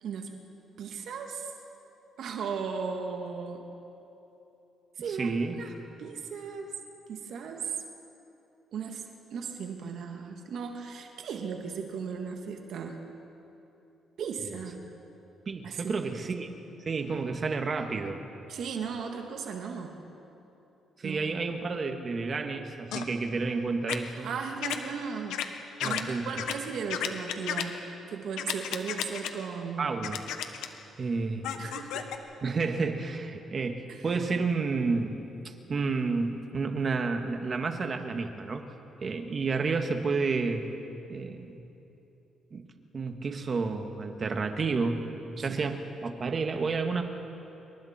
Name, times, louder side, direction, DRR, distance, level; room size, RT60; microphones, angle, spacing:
voice 1, 0.0-0.4 0.8-1.5 2.2-3.6 5.0-5.3 5.6-5.7 6.0-6.7 7.1-7.8 8.7-9.0 9.3-13.0 14.2-14.8 15.6-15.9 18.5-19.9 21.0-21.3 24.2-25.4 25.8-27.8 28.1-29.9 31.6-32.1 33.9-34.0 45.4-45.5, right 6 dB, 70° right, 3 dB, 1.8 m, -36 dB
voice 2, 5.1-5.6 15.5-16.5 16.9-18.2 21.0-24.3 25.8-26.3 29.8-30.2 30.6-30.7 31.0-31.5 32.4-35.1 35.4-38.7 39.0-40.6 41.1-41.6 42.5-42.7 42.9-45.1 45.4-47.0, right 4 dB, 40° right, 5 dB, 1.9 m, -30 dB
sound 1, 22.9-23.1 23.9-24.0 24.6-24.8 25.3-25.5 25.8-26.0 26.4-26.5 26.9-27.6 28.4-29.3 30.0-30.7 31.4-32.2, left 10 dB, 90° left, 1.2 m, -32 dB
27.5 x 23.5 x 4.4 m, 3.0 s
cardioid pair, 90°, 0 cm